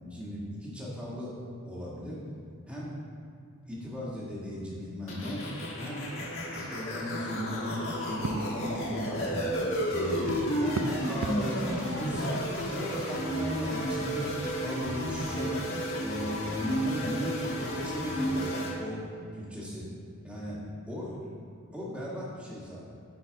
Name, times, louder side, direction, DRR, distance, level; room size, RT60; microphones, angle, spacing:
voice 1, 0.0-1.3 1.6-2.2 2.7-2.9 3.7-5.4 5.8-6.1 6.5-9.5 9.9-12.4 12.7-15.6 16.0-19.0 19.3-19.9 20.2-20.6 20.8-21.4 21.7-22.8, equal, 5° right, -7 dB, 1.4 m, -36 dB
sound 1, 5.1-18.7, equal, 65° left, 1.3 m, -32 dB
sound 2, 7.8-15.5, right 3 dB, 60° right, 0.4 m, -42 dB
8.8 x 4.1 x 4.5 m, 2.3 s
head